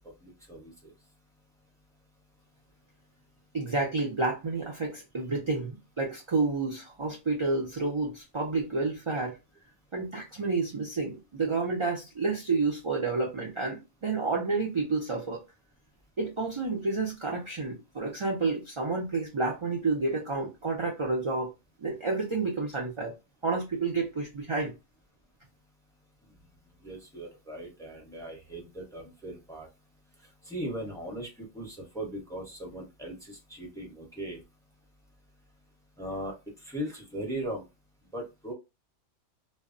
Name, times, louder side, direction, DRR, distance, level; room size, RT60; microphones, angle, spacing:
voice 1, 0.2-0.9 26.8-29.7 30.5-34.4 36.0-36.3 36.6-37.6 38.1-38.5, right 1 dB, 5° left, 0.7 m, -38 dB
voice 2, 3.5-9.4 9.9-15.4 16.2-21.5 21.8-23.1 23.4-24.7, right 3 dB, 45° right, 0.4 m, -30 dB
2.2 x 2.0 x 3.7 m
omnidirectional pair, 1.3 m